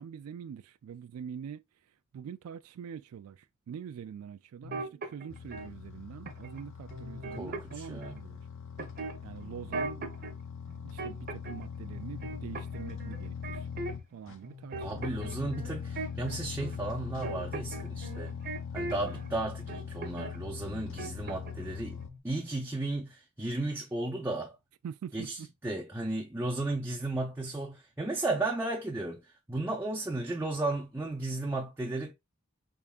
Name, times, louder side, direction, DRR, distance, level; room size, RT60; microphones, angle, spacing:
voice 1, 0.0-1.6 2.1-8.4 9.2-10.1 10.8-13.7 14.1-15.6 24.8-25.5, right 7 dB, 75° right, 0.3 m, -44 dB
sound 1, 4.6-5.7 6.3-6.6 6.9-8.2 8.8-10.3 10.7-11.6 11.9-14.1 14.4-19.3 19.7-20.4 20.6-21.7 21.9-22.2, right 2 dB, 45° right, 0.8 m, -40 dB
sound 2, 5.3-14.4 14.7-22.1, left 6 dB, 60° left, 0.5 m, -41 dB
voice 2, 7.4-8.2 14.8-18.3 18.7-22.0 22.2-24.6 25.1-32.1, right 2 dB, 10° right, 0.5 m, -34 dB
3.7 x 3.6 x 2.3 m
head